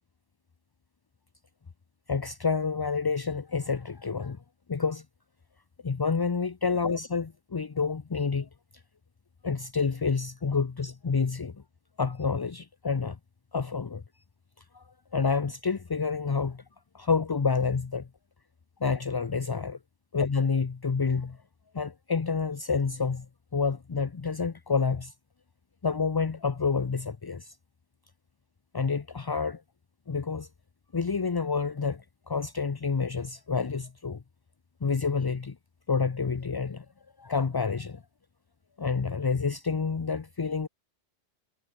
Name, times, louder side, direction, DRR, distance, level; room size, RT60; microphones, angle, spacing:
voice 1, 2.1-4.4 4.7-5.0 5.8-8.5 9.4-11.6 12.0-13.2 13.5-14.0 14.7-14.8 15.1-16.6 16.9-18.1 18.8-19.8 20.1-21.4 21.7-23.3 23.5-25.1 25.8-27.5 28.7-29.6 30.1-30.5 30.9-34.2 34.8-35.6 35.9-36.9 37.2-38.0 38.8-40.7, left 5 dB, 35° left, 0.4 m, -28 dB
omnidirectional pair, 1.2 m